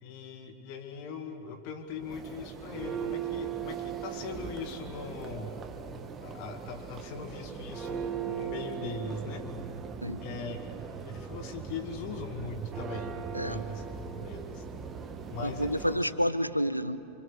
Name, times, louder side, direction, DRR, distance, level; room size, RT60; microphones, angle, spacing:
voice 1, 0.0-5.7 6.2-9.5 10.2-10.8 11.0-13.9 14.1-14.7 15.3-15.9, left 4 dB, 45° left, 5 dB, 2.3 m, -40 dB
Church bell, 1.9-16.2, right 7 dB, 25° right, 1.4 m, -39 dB
voice 2, 15.4-17.0, equal, 90° left, 13 dB, 0.6 m, -29 dB
28.0 x 24.5 x 6.5 m, 2.7 s
figure-of-eight pair, 90°, 0 cm